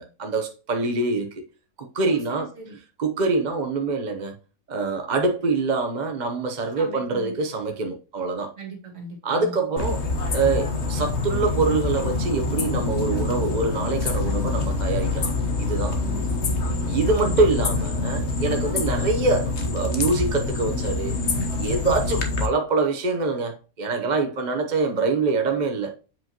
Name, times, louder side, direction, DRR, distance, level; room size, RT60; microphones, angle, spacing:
voice 1, 0.0-1.4 1.8-2.5 3.0-4.3 4.7-8.5 9.2-10.0 10.3-15.3 15.6-16.0 16.9-21.2 21.6-25.9, right 3 dB, 35° right, 0.9 m, -25 dB
voice 2, 2.0-2.8 6.8-7.3 8.6-9.5 16.0-17.4, right 2 dB, 55° right, 2.3 m, -39 dB
sound 1, 9.8-22.5, left 3 dB, 55° left, 1.3 m, -26 dB
7.4 x 5.2 x 2.9 m
omnidirectional pair, 1.5 m